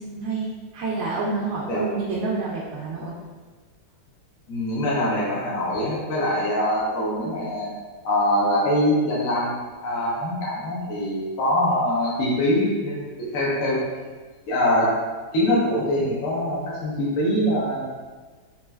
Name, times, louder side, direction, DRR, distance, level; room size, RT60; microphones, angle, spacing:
voice 1, 0.0-3.1, right 3 dB, 85° right, -6 dB, 1.4 m, -28 dB
voice 2, 4.5-7.7 8.0-9.5 9.8-13.8 14.5-14.9 15.3-17.8, left 1 dB, 60° left, -7 dB, 0.9 m, -23 dB
4.2 x 2.5 x 2.2 m, 1.4 s
omnidirectional pair, 2.3 m